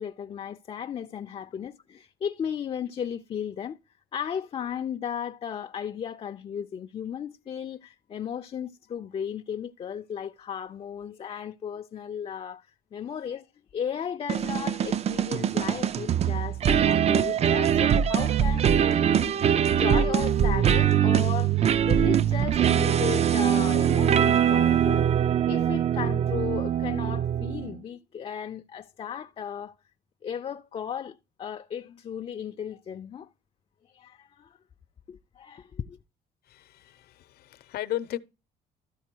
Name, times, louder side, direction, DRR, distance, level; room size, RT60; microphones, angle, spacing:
voice 1, 0.0-3.8 4.1-12.7 12.9-13.5 13.7-25.1 25.5-29.7 30.2-33.3 33.9-34.6 35.1-36.0, left 8 dB, 35° left, 0.5 m, -35 dB
sound 1, 14.3-27.8, right 9 dB, 40° right, 0.4 m, -23 dB
voice 2, 36.4-38.2, left 13 dB, 70° left, 0.8 m, -35 dB
13.0 x 4.6 x 4.5 m
cardioid pair, 110°, 17 cm